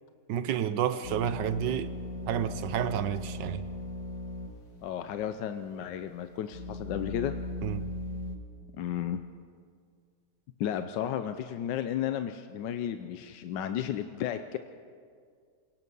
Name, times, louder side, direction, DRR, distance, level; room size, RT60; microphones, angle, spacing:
voice 1, 0.3-1.9 2.3-3.6 7.6-7.9, right 9 dB, 80° right, 1.5 m, -30 dB
sound 1, 1.0-4.6 4.9-5.0 5.6-8.4, left 2 dB, 45° left, 1.8 m, -38 dB
voice 2, 4.8-7.3 8.7-9.2 10.6-14.6, left 10 dB, 80° left, 1.4 m, -33 dB
27.5 x 18.0 x 5.4 m
omnidirectional pair, 1.9 m